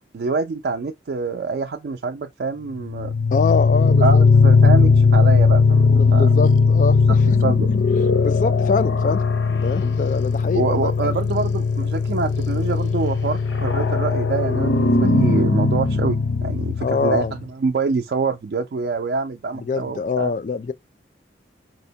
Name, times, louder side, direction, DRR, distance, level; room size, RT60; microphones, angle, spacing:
voice 1, 0.1-3.1 4.0-6.3 7.1-7.2 7.4-7.7 10.5-20.3, right 4 dB, 65° right, 0.4 m, -25 dB
sound 1, 2.8-17.4, left 4 dB, 85° left, 0.6 m, -18 dB
voice 2, 3.3-4.2 5.9-7.2 8.2-9.2 9.5-11.2 16.8-17.3 19.5-20.7, left 4 dB, 45° left, 0.3 m, -24 dB
4.2 x 2.0 x 2.7 m
head